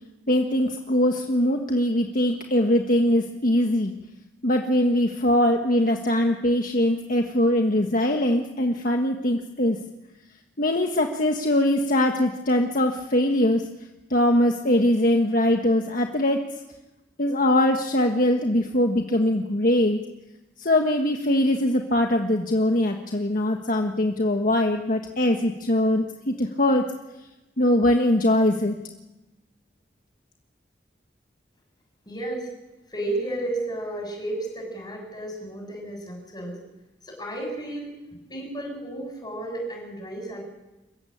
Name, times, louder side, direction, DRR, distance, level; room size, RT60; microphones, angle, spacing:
voice 1, 0.3-3.9 4.4-9.8 10.6-13.7 14.1-16.5 17.2-20.0 20.6-26.9 27.6-28.8, left 1 dB, 50° left, 3 dB, 1.6 m, -22 dB
voice 2, 32.1-32.5 32.9-36.6 37.0-38.0 38.3-40.4, right 1 dB, 25° left, 2 dB, 7.3 m, -32 dB
29.0 x 15.5 x 8.8 m, 1.0 s
head